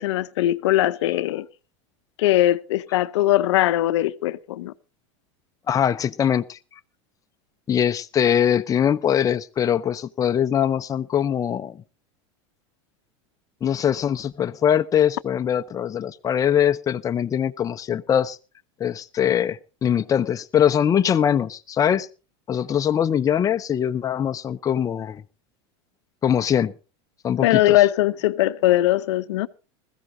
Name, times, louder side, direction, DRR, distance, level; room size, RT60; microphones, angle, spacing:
voice 1, 0.0-1.5 2.2-4.7 27.4-29.5, left 15 dB, 80° left, 0.7 m, -20 dB
voice 2, 5.7-6.6 7.7-11.8 13.6-18.4 18.8-22.1 22.5-25.2 26.2-26.7 27.2-27.8, left 9 dB, 25° left, 0.7 m, -22 dB
20.5 x 15.0 x 2.7 m
supercardioid pair, 125°, 15 cm